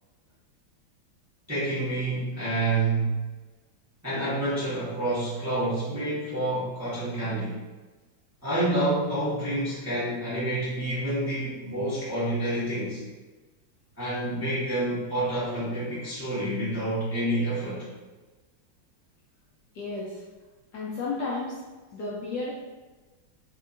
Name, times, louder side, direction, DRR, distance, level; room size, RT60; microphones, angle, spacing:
voice 1, 1.5-3.2 4.0-7.6 8.4-13.0 14.0-17.9, right 1 dB, 15° right, -11 dB, 0.5 m, -28 dB
voice 2, 19.7-20.2 20.7-21.5 21.9-22.5, left 3 dB, 70° left, -6 dB, 1.0 m, -32 dB
3.4 x 2.8 x 2.5 m, 1.2 s
omnidirectional pair, 2.2 m